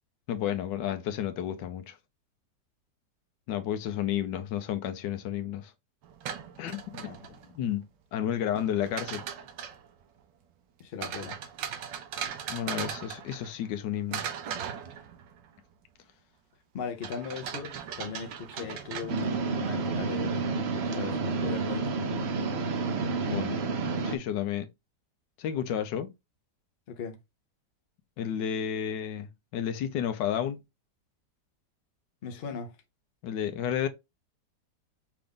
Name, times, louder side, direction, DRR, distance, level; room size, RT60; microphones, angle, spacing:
voice 1, 0.3-2.0 3.5-5.7 6.6-7.8 8.1-9.2 12.5-14.2 23.2-23.6 24.0-24.7 25.4-26.1 28.2-30.6 33.2-33.9, left 10 dB, 80° left, 1.3 m, -31 dB
sound 1, 6.0-7.6 8.6-9.9 11.0-13.8 14.1-15.5 17.0-19.6, right 8 dB, 85° right, 1.5 m, -38 dB
voice 2, 10.8-11.4 16.7-20.5 20.7-21.9 26.9-27.2 32.2-32.7, left 6 dB, 45° left, 0.8 m, -38 dB
sound 2, 19.1-24.2, right 4 dB, 60° right, 0.6 m, -30 dB
5.8 x 2.6 x 3.5 m
omnidirectional pair, 1.9 m